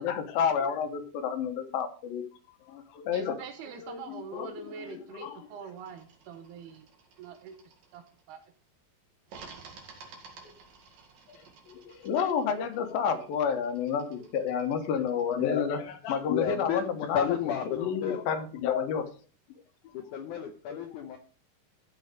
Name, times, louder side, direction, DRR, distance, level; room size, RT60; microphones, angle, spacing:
voice 1, 0.0-2.2 2.7-3.4 3.8-5.3 11.3-11.4 11.7-15.8 16.1-17.3 17.8-19.0 20.7-20.8, left 7 dB, 70° left, 8 dB, 2.8 m, -30 dB
voice 2, 3.1-6.9 7.2-8.4, right 6 dB, 80° right, 7 dB, 2.9 m, -44 dB
sound 1, 5.8-8.5 9.3-15.5, right 4 dB, 60° right, 3.5 m, -53 dB
voice 3, 15.3-15.7 16.0-18.2 19.9-21.2, left 8 dB, 85° left, 7 dB, 1.8 m, -32 dB
13.0 x 5.7 x 5.1 m, 0.38 s
omnidirectional pair, 4.6 m